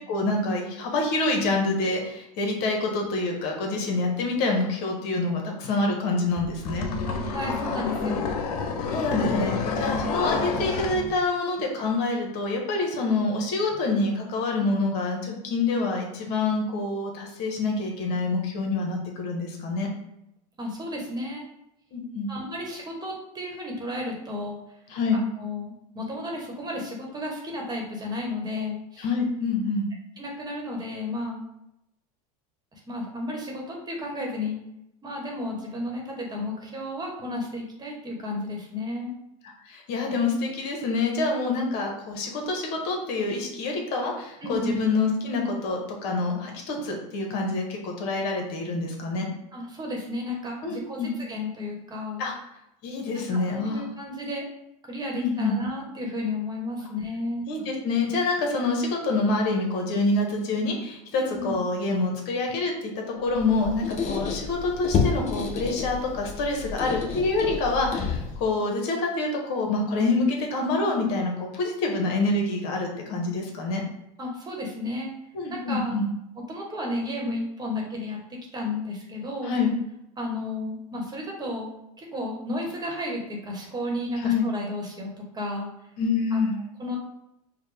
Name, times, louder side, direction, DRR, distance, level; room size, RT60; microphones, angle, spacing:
voice 1, 0.1-6.9 8.0-8.1 8.8-19.9 21.9-22.3 24.9-25.2 29.0-29.9 39.7-49.3 50.6-51.1 52.2-52.3 52.8-53.9 55.1-55.6 57.5-73.8 75.3-76.0 79.4-79.7 84.2-84.5 86.0-86.6, left 3 dB, 60° left, 1 dB, 1.0 m, -26 dB
sound 1, 6.4-11.1, left 4 dB, 85° left, 0.5 m, -29 dB
voice 2, 7.1-8.3 20.6-21.4 22.3-24.6 25.1-29.1 30.2-31.5 32.7-34.6 35.0-39.1 44.4-44.8 49.5-52.2 53.3-54.4 54.8-57.5 61.1-61.6 74.2-75.1 75.5-75.9 76.5-78.2 78.5-79.5 80.2-81.7 82.0-85.1 85.3-85.7 86.3-86.4 86.8-87.0, left 1 dB, 20° right, -1 dB, 1.2 m, -33 dB
Squeak, 63.3-68.5, left 5 dB, 35° left, 0.8 m, -30 dB
5.0 x 2.2 x 3.3 m, 0.84 s
supercardioid pair, 105°, 19 cm